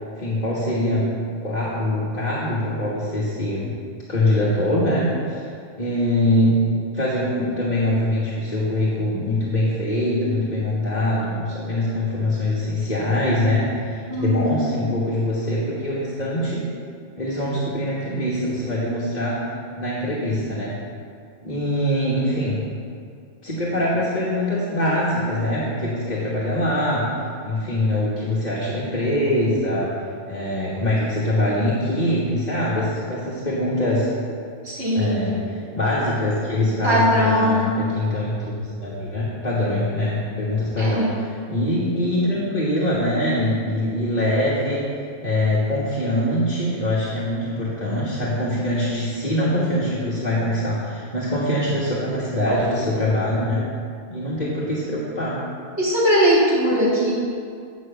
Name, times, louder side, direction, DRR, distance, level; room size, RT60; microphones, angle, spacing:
voice 1, 0.2-3.7 4.1-5.5 5.8-6.6 6.9-16.7 17.2-19.4 19.8-20.8 21.4-22.6 23.4-30.0 30.3-34.1 35.0-35.4 35.7-38.4 38.8-44.9 45.2-53.7 54.1-55.4, left 1 dB, 35° left, -9 dB, 1.6 m, -23 dB
voice 2, 14.1-14.8 34.6-35.2 36.8-37.8 40.8-41.1 55.8-57.1, equal, 55° right, -8 dB, 3.0 m, -20 dB
9.5 x 5.3 x 6.7 m, 2.3 s
omnidirectional pair, 1.4 m